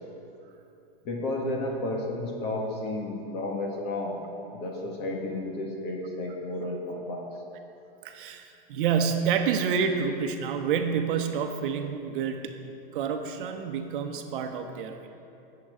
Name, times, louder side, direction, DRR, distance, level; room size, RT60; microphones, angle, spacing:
voice 1, 1.0-4.2 4.5-7.3, left 2 dB, 35° left, -1 dB, 1.8 m, -32 dB
voice 2, 8.0-12.6 12.9-15.1, right 6 dB, 60° right, 5 dB, 1.0 m, -28 dB
18.5 x 7.7 x 3.7 m, 2.8 s
supercardioid pair, 155°, 30 cm